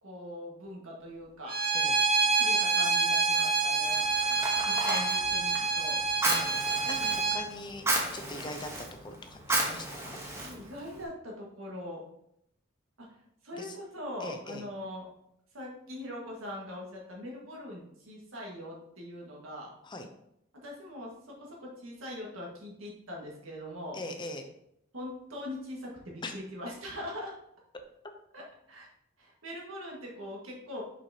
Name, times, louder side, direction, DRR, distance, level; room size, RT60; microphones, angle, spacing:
voice 1, 0.0-1.6 2.3-4.4 4.6-6.0 7.0-7.4 10.3-12.0 13.0-13.1 13.4-15.1 15.5-19.7 20.6-24.0 24.9-27.4 28.3-28.9 29.2-30.8, left 1 dB, 80° right, -2 dB, 1.7 m, -42 dB
Bowed string instrument, 1.5-7.4, right 4 dB, 45° right, 1.3 m, -27 dB
Fire, 3.9-11.0, right 2 dB, 15° right, 1.0 m, -34 dB
voice 2, 6.3-7.9 8.1-8.7 9.0-10.2 13.6-13.8 14.2-14.7 19.8-20.1 23.9-24.5 26.2-26.3, left 2 dB, 20° left, 5 dB, 0.6 m, -41 dB
5.9 x 5.6 x 2.8 m, 0.76 s
head